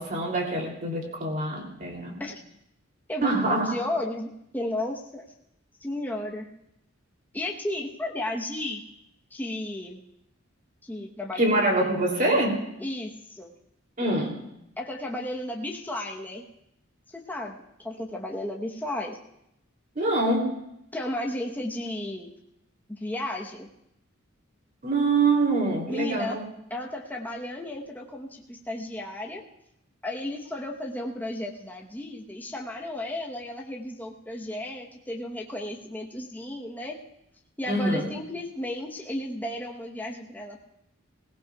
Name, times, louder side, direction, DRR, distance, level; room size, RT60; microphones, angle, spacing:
voice 1, 0.0-2.1 3.2-3.6 11.4-12.6 14.0-14.4 19.9-20.5 24.8-26.4 37.7-38.0, right 2 dB, 40° right, 0 dB, 3.0 m, -25 dB
voice 2, 3.1-4.3 4.5-5.2 5.8-6.5 7.3-8.8 9.3-10.0 10.8-12.0 12.8-13.5 14.8-16.4 17.1-19.2 20.9-22.3 22.9-23.7 25.9-26.4 26.7-29.4 30.0-37.0 37.6-40.7, left 1 dB, 10° left, -1 dB, 1.0 m, -34 dB
21.0 x 17.0 x 2.4 m, 0.79 s
head